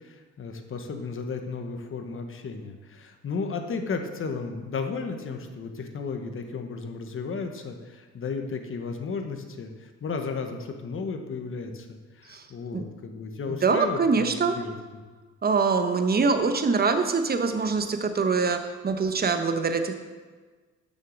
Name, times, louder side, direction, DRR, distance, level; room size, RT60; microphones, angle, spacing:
voice 1, 0.0-14.3 14.5-15.0, left 4 dB, 45° left, 5 dB, 1.1 m, -34 dB
voice 2, 13.5-14.6 15.4-19.9, right 4 dB, 30° right, 7 dB, 0.9 m, -24 dB
6.7 x 6.4 x 6.3 m, 1.4 s
cardioid pair, 90°, 30 cm